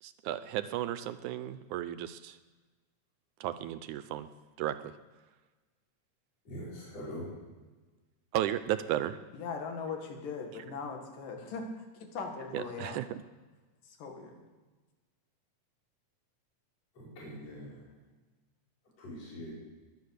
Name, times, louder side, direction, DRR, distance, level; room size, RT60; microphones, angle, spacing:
voice 1, 0.0-2.4 3.4-4.3 4.6-4.9 8.3-9.2 12.5-13.2, right 12 dB, 80° right, 13 dB, 2.0 m, -34 dB
voice 2, 6.5-7.3 17.0-17.7 19.0-19.5, equal, 50° left, -7 dB, 6.3 m, -43 dB
voice 3, 9.3-13.0 14.0-14.3, left 4 dB, 85° left, 3 dB, 3.7 m, -39 dB
21.5 x 9.1 x 6.6 m, 1.3 s
omnidirectional pair, 3.7 m